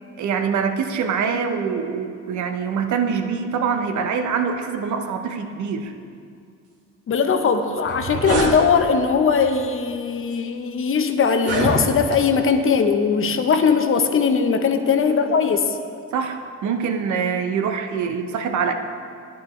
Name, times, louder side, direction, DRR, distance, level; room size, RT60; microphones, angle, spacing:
voice 1, 0.2-5.9 16.1-18.7, right 6 dB, 75° right, 6 dB, 0.7 m, -24 dB
voice 2, 7.1-15.8, left 5 dB, 45° left, 7 dB, 0.7 m, -20 dB
sound 1, 7.8-8.5 9.4-9.6 10.3-10.4 11.3-12.2, right 2 dB, 55° right, 1.6 m, -24 dB
9.4 x 9.3 x 3.1 m, 2.3 s
cardioid pair, 90°, 30 cm